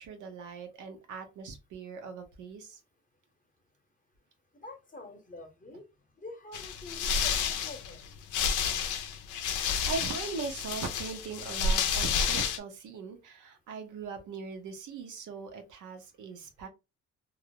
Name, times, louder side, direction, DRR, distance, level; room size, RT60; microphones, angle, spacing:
voice 1, 0.0-2.8 9.6-16.7, right 5 dB, 80° right, 0.8 m, -40 dB
voice 2, 4.5-5.8 6.2-8.0, left 2 dB, 25° left, 0.8 m, -46 dB
sound 1, 6.5-12.6, left 6 dB, 80° left, 0.5 m, -30 dB
2.5 x 2.0 x 2.8 m
cardioid pair, 90°, 30 cm